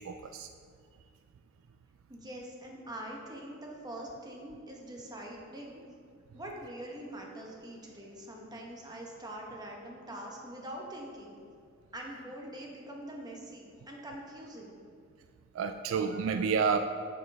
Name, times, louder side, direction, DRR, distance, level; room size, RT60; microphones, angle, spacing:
voice 1, 0.1-0.5 15.6-16.8, right 5 dB, 70° right, 8 dB, 0.3 m, -29 dB
voice 2, 2.1-5.8 6.3-11.4 11.9-14.8, right 1 dB, 20° right, -1 dB, 1.1 m, -44 dB
8.6 x 6.5 x 3.4 m, 2.2 s
head